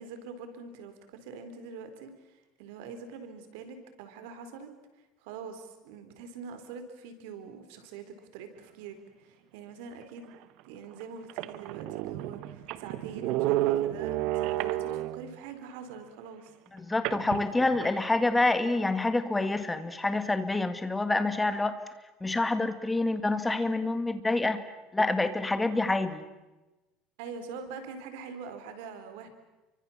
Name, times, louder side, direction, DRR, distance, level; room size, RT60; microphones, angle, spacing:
voice 1, 0.0-4.7 5.2-10.3 10.6-16.5 27.2-29.3, right 5 dB, 80° right, 8 dB, 4.1 m, -44 dB
sound 1, 10.3-10.4 11.0-11.1 11.3-15.4 17.0-18.1, right 14 dB, 65° right, 1.3 m, -31 dB
voice 2, 16.7-21.8 22.2-24.6 24.9-26.2, left 2 dB, 10° left, 10 dB, 2.0 m, -27 dB
29.5 x 24.5 x 7.3 m, 1.1 s
cardioid pair, 140°, 0 cm